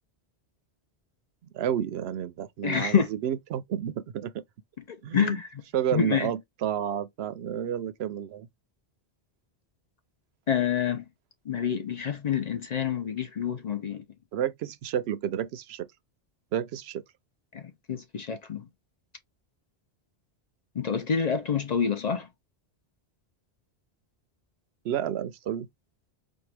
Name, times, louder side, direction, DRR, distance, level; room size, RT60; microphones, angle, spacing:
voice 1, 1.5-4.3 5.0-5.4 5.7-8.5 14.3-15.9 16.5-17.0 24.8-25.7, right 10 dB, 75° right, 0.8 m, -30 dB
voice 2, 2.6-3.1 4.9-5.5 5.9-6.3 10.5-11.1 11.5-14.0 17.5-17.6 17.9-18.7 20.8-22.3, left 7 dB, 50° left, 0.6 m, -27 dB
4.4 x 2.3 x 3.2 m
omnidirectional pair, 1.1 m